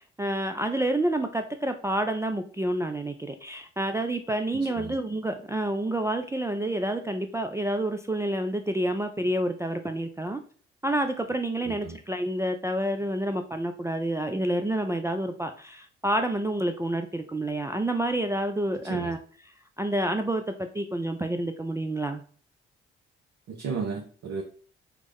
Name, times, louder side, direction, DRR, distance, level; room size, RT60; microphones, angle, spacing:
voice 1, 0.0-10.4 10.8-19.2 19.8-20.4 20.7-22.2, right 1 dB, 10° right, 5 dB, 0.3 m, -28 dB
voice 2, 4.5-5.0 11.6-12.0 18.9-19.2 23.5-24.4, right 5 dB, 55° right, 1 dB, 0.6 m, -34 dB
3.5 x 2.0 x 3.4 m, 0.43 s
hypercardioid pair, 45°, 30 cm